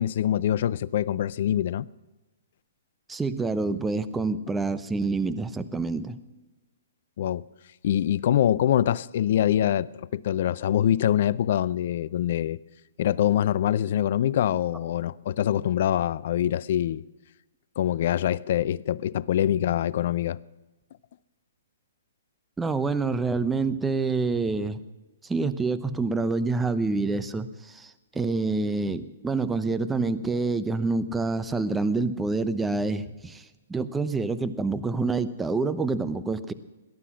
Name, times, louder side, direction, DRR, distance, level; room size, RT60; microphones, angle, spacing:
voice 1, 0.0-1.9 7.2-7.4 7.8-12.6 13.0-17.0 17.8-20.4, left 11 dB, 55° left, 0.5 m, -24 dB
voice 2, 3.1-6.2 22.6-24.8 25.2-36.5, right 3 dB, 10° right, 0.8 m, -27 dB
18.0 x 12.0 x 6.3 m
hypercardioid pair, 125°, 0 cm